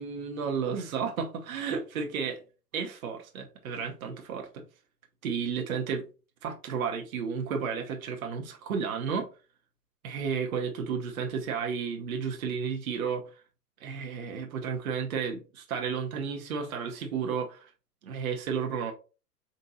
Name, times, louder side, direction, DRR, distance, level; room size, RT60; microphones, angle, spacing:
voice 1, 0.0-2.3 2.7-4.6 5.2-6.0 6.4-9.3 10.0-13.3 13.8-17.7 18.0-18.9, right 6 dB, 60° right, 0.9 m, -32 dB
4.1 x 3.6 x 2.6 m
hypercardioid pair, 120°, 48 cm